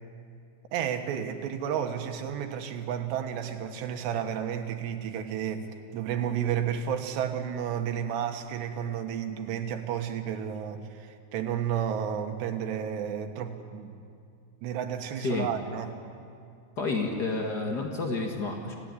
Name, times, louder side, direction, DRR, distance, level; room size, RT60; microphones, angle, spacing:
voice 1, 0.7-5.7 5.9-14.0 14.6-16.0, right 9 dB, 80° right, 6 dB, 3.5 m, -32 dB
voice 2, 16.8-18.7, left 3 dB, 75° left, 1 dB, 0.9 m, -30 dB
27.0 x 16.5 x 9.8 m, 2.4 s
omnidirectional pair, 4.9 m